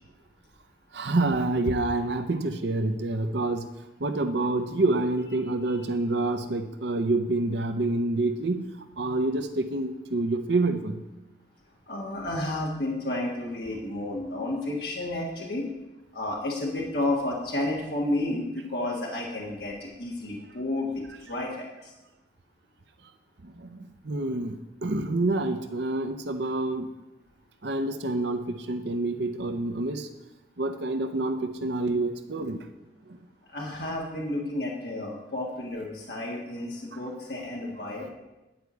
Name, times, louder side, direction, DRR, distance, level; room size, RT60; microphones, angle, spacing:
voice 1, 0.9-3.7 4.0-8.7 9.0-11.0 23.4-26.9 27.6-30.1 30.6-32.7 33.1-33.2 36.9-37.0, right 2 dB, 70° right, 8 dB, 0.7 m, -27 dB
voice 2, 11.9-15.6 16.1-21.9 33.5-38.1, left 1 dB, 60° left, -2 dB, 1.6 m, -31 dB
10.5 x 4.7 x 8.0 m, 1.0 s
head